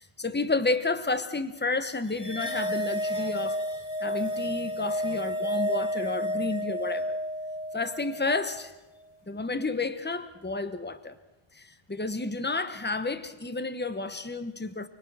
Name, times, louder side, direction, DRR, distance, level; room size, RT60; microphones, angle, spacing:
voice 1, 0.0-3.6 4.0-7.2 7.7-8.7 9.3-11.1 11.6-14.9, left 3 dB, 10° left, 1.0 m, -31 dB
sound 1, 2.2-8.7, left 1 dB, 30° left, 1.3 m, -31 dB
29.0 x 21.5 x 6.2 m
omnidirectional pair, 1.1 m